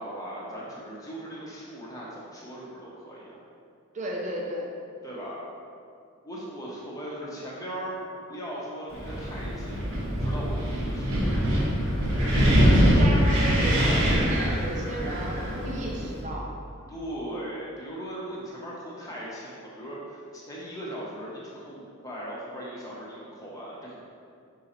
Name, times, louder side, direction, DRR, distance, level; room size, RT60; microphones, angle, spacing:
voice 1, 0.0-3.4 5.0-5.4 6.2-8.0 8.3-9.8 10.2-11.7 16.9-24.0, right 1 dB, 15° left, -6 dB, 1.0 m, -38 dB
voice 2, 3.9-4.6 12.3-16.5, equal, 35° right, -2 dB, 0.8 m, -34 dB
Wind, 8.9-16.2, equal, 65° right, 1.4 m, -23 dB
5.6 x 3.9 x 4.4 m, 2.4 s
head